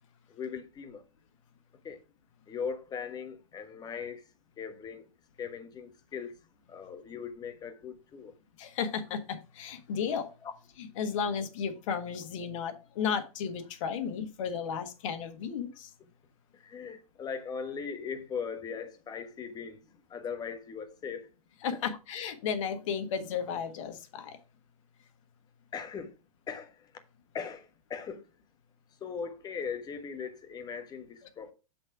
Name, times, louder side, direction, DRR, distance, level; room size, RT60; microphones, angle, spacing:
voice 1, 0.3-1.0 1.8-2.0 2.5-4.2 4.6-5.1 5.4-6.4 6.7-8.3 10.4-10.5 16.5-19.8 20.1-21.3 21.7-21.8 25.7-26.2 26.5-26.9 27.3-28.3 29.0-31.5, left 6 dB, 20° left, 1.2 m, -39 dB
voice 2, 8.6-10.3 10.8-15.9 21.6-24.4, left 7 dB, 60° left, 1.5 m, -34 dB
7.4 x 4.3 x 4.7 m
hypercardioid pair, 125°, 18 cm